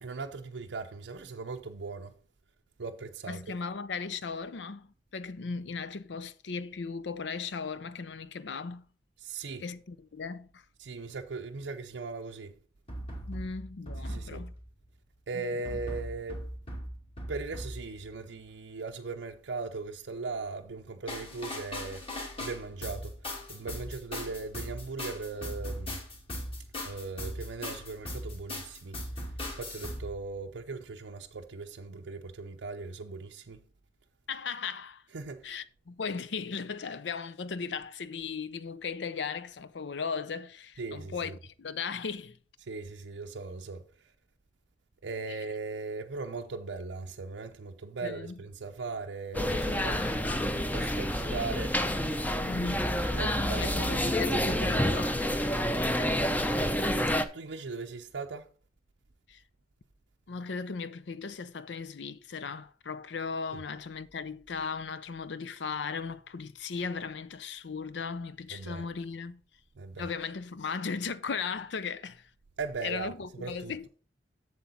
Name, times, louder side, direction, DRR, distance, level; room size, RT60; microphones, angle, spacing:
voice 1, 0.0-2.2 2.8-3.5 9.2-9.7 10.8-12.5 14.0-14.4 15.3-16.5 17.3-23.2 23.5-26.0 26.8-33.6 35.1-35.6 40.8-41.3 42.7-44.1 45.0-52.1 53.1-55.0 57.3-58.5 63.5-63.6 68.5-68.8 69.8-70.1 72.6-73.7, right 4 dB, 75° right, 0.6 m, -39 dB
voice 2, 3.3-4.9 5.1-8.9 9.6-10.6 13.3-14.5 15.3-15.4 34.3-35.0 35.4-42.4 45.3-45.4 48.0-48.4 52.4-53.0 53.6-55.2 59.3-59.4 60.3-69.4 70.0-72.3 72.8-73.9, left 5 dB, 70° left, 0.5 m, -37 dB
sound 1, 12.9-14.9 15.6-18.1 21.1-30.6, left 1 dB, 30° left, 2.4 m, -39 dB
sound 2, 49.3-57.2, equal, 10° left, 0.6 m, -28 dB
7.8 x 7.2 x 4.1 m
head